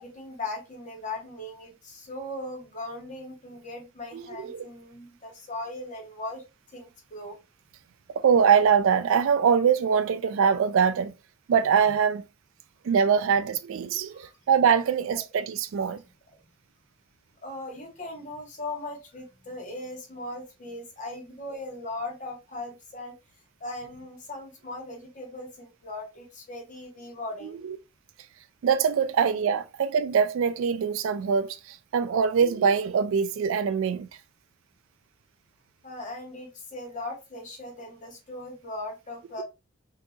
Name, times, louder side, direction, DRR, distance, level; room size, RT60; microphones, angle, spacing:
voice 1, 0.0-6.4 6.7-7.4 14.1-14.4 17.4-23.1 23.6-27.6 35.8-39.4, left 2 dB, 35° left, 1.2 m, -38 dB
voice 2, 4.1-4.7 8.2-11.1 11.5-12.3 12.8-16.0 27.6-27.8 28.6-34.1, right 7 dB, 70° right, 0.3 m, -23 dB
3.7 x 2.7 x 2.3 m
head